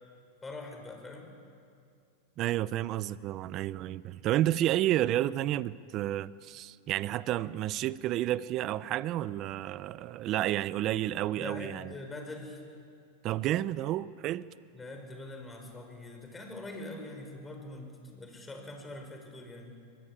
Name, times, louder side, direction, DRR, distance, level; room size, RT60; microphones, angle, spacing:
voice 1, 0.4-1.3 11.4-12.6 14.7-19.8, left 2 dB, 15° left, 5.2 m, -43 dB
voice 2, 2.4-11.9 13.2-14.5, right 13 dB, 40° right, 0.6 m, -30 dB
24.5 x 20.5 x 8.7 m
hypercardioid pair, 125°, 0 cm